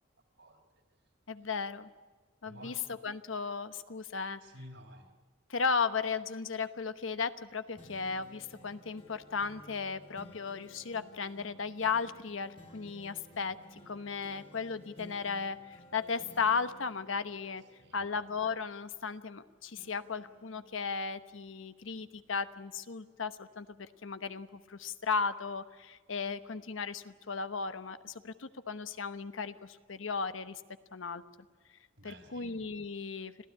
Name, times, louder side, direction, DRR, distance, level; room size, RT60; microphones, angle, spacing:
voice 1, 0.4-0.8 1.3-1.5 2.4-2.8 4.4-5.1 17.8-18.1 32.0-32.6, right 1 dB, 75° right, 2 dB, 4.3 m, -52 dB
voice 2, 1.3-1.9 2.4-2.7 3.0-4.4 5.5-17.6 17.9-30.6 30.9-31.2 32.0-33.3, left 5 dB, 90° left, 11 dB, 1.0 m, -35 dB
sound 1, 7.8-19.4 19.8-21.7 22.2-22.3, equal, 30° left, 2.2 m, -56 dB
26.0 x 16.0 x 9.9 m, 1.3 s
head